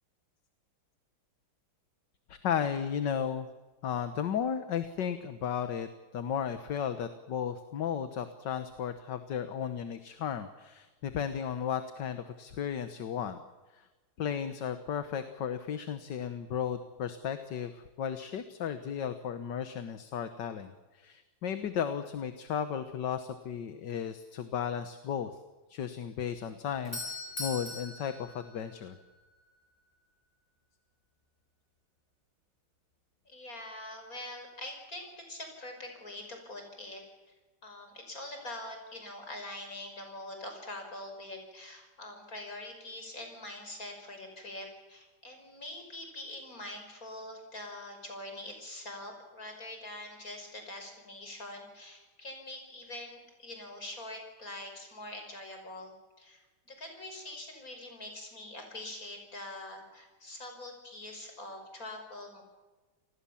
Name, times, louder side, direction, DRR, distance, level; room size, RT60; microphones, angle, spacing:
voice 1, 2.3-3.5 3.8-13.4 13.7-13.9 14.2-25.3 25.7-29.0, left 8 dB, 60° left, 9 dB, 1.7 m, -34 dB
Doorbell, 26.5-29.3, left 2 dB, 25° left, 7.5 m, -41 dB
voice 2, 33.3-37.3 37.6-62.4, left 1 dB, 40° left, 4 dB, 6.2 m, -44 dB
28.5 x 20.0 x 7.2 m, 1.2 s
omnidirectional pair, 2.3 m